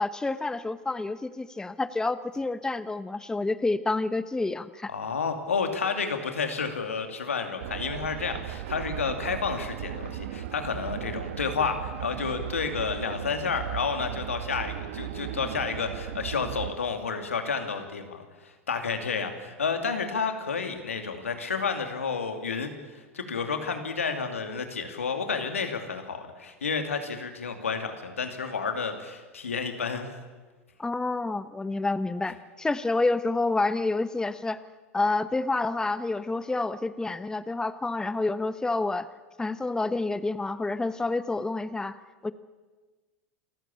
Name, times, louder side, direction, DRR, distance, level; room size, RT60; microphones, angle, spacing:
voice 1, 0.0-4.9 30.8-34.6 34.9-39.1 39.4-42.3, left 3 dB, 10° left, 14 dB, 0.9 m, -28 dB
voice 2, 4.9-22.7 23.1-30.1, left 5 dB, 85° left, 6 dB, 2.6 m, -30 dB
sound 1, 7.6-16.7, right 11 dB, 70° right, 1.3 m, -36 dB
27.5 x 14.5 x 8.7 m, 1.3 s
hypercardioid pair, 85°, 7 cm